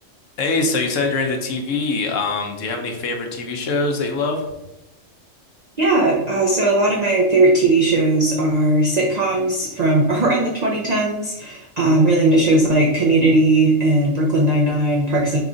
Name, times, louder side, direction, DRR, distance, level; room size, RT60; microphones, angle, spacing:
voice 1, 0.4-4.5, left 3 dB, 75° left, 3 dB, 1.0 m, -23 dB
voice 2, 5.8-15.4, right 2 dB, 50° right, -2 dB, 0.5 m, -18 dB
4.8 x 2.4 x 3.8 m, 0.90 s
omnidirectional pair, 1.4 m